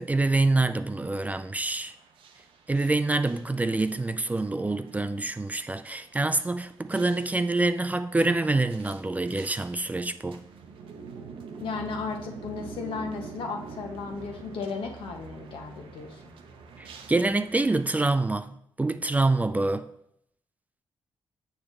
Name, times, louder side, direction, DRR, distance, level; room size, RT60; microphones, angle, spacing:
voice 1, 0.0-1.9 2.7-10.4 16.8-19.9, right 2 dB, 15° right, 0.4 m, -26 dB
sound 1, 0.8-18.1, right 5 dB, 80° right, 0.8 m, -47 dB
voice 2, 11.6-16.2, left 4 dB, 80° left, 1.2 m, -35 dB
6.9 x 6.9 x 3.3 m
cardioid pair, 75°, 9 cm